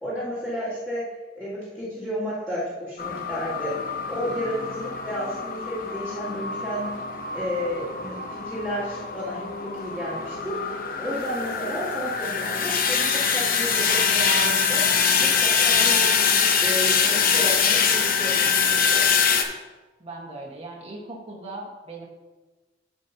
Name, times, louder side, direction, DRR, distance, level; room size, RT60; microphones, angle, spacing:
voice 1, 0.0-1.0 1.4-7.0 7.3-14.8 15.2-19.0, equal, 5° left, -13 dB, 2.4 m, -32 dB
sound 1, 3.0-19.4, left 6 dB, 55° left, 0.7 m, -24 dB
voice 2, 20.0-22.1, right 2 dB, 35° right, -4 dB, 1.4 m, -38 dB
13.0 x 5.2 x 2.8 m, 1.2 s
head